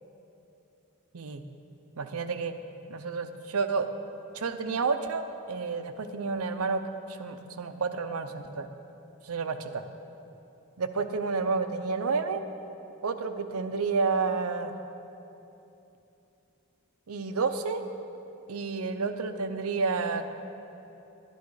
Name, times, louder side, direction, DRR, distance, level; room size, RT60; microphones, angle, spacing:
voice 1, 2.0-2.5 2.9-3.9 4.3-6.8 7.1-8.7 9.2-9.8 10.8-12.4 13.0-14.7 17.1-17.8 18.5-20.3, right 4 dB, 80° right, 8 dB, 0.7 m, -30 dB
11.0 x 10.5 x 4.8 m, 2.9 s
head